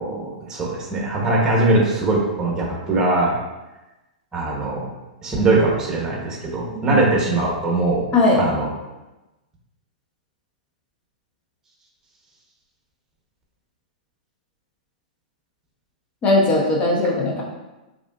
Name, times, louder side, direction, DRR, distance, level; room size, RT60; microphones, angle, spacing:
voice 1, 0.0-3.3 4.3-4.9 5.2-8.0 8.4-8.7, right 2 dB, 15° right, -2 dB, 1.3 m, -21 dB
voice 2, 16.2-17.4, left 2 dB, 30° left, -3 dB, 1.1 m, -18 dB
4.8 x 3.0 x 2.6 m, 1.0 s
hypercardioid pair, 110°, 4 cm